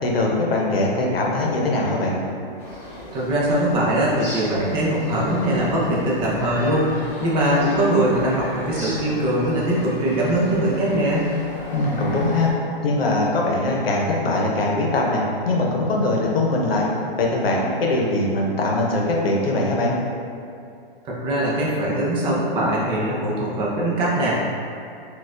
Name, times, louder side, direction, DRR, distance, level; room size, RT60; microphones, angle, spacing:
voice 1, 0.0-2.2 11.7-12.5 12.8-16.9 17.2-19.9, left 2 dB, 80° left, -2 dB, 0.8 m, -21 dB
sound 1, 2.6-12.5, left 1 dB, 20° left, 1.4 m, -36 dB
voice 2, 3.1-11.3 21.0-24.6, right 1 dB, 15° right, -6 dB, 0.5 m, -21 dB
4.1 x 2.4 x 2.4 m, 2.6 s
hypercardioid pair, 135°, 29 cm